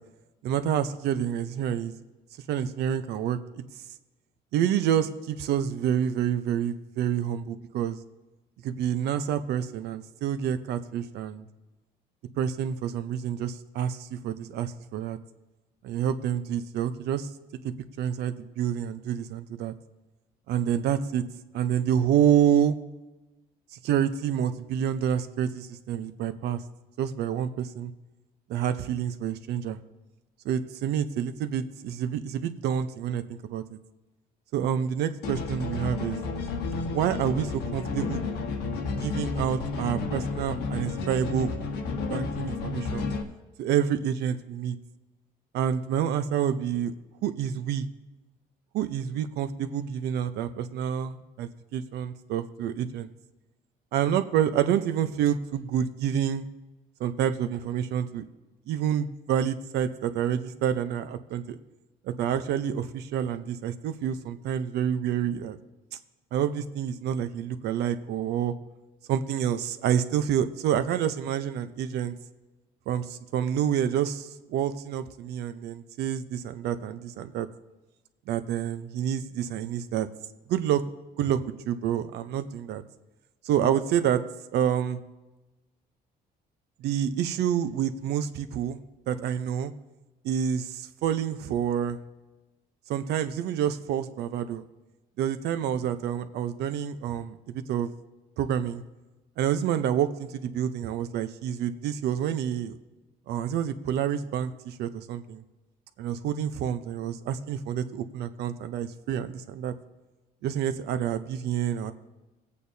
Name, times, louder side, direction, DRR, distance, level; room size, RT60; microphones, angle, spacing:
voice 1, 0.4-1.9 2.5-3.4 4.5-8.0 8.6-11.5 12.4-15.2 15.8-17.3 17.6-19.7 20.5-21.2 21.5-22.8 23.7-26.6 27.0-27.9 28.5-29.8 30.4-33.8 34.5-36.2 36.9-38.2 39.0-41.5 42.1-43.1 43.6-44.7 45.5-46.9 47.2-47.9 48.7-53.1 53.9-56.5 57.0-58.3 58.7-61.6 62.0-65.6 66.3-68.5 69.1-72.1 72.9-77.5 78.3-80.1 80.5-80.8 81.2-82.8 83.4-84.2 84.5-85.0 86.8-88.8 89.1-89.7 90.2-92.0 92.9-94.6 95.2-97.9 98.4-98.8 99.4-102.8 103.3-105.4 106.0-109.7 110.4-111.9, right 9 dB, 75° right, 11 dB, 0.8 m, -28 dB
sound 1, 35.2-43.2, left 3 dB, 80° left, 1.3 m, -31 dB
19.5 x 8.4 x 2.8 m, 1.1 s
cardioid pair, 110°, 17 cm